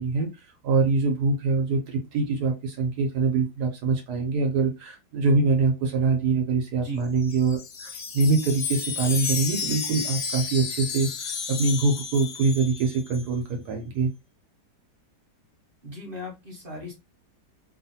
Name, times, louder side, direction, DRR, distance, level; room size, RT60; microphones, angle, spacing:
voice 1, 0.0-14.1, right 4 dB, 70° right, 4 dB, 1.1 m, -24 dB
Wind chime, 7.0-13.2, left 6 dB, 60° left, 0.8 m, -32 dB
voice 2, 15.8-16.9, equal, 50° right, 0 dB, 0.7 m, -37 dB
2.8 x 2.4 x 2.6 m, 0.24 s
omnidirectional pair, 1.9 m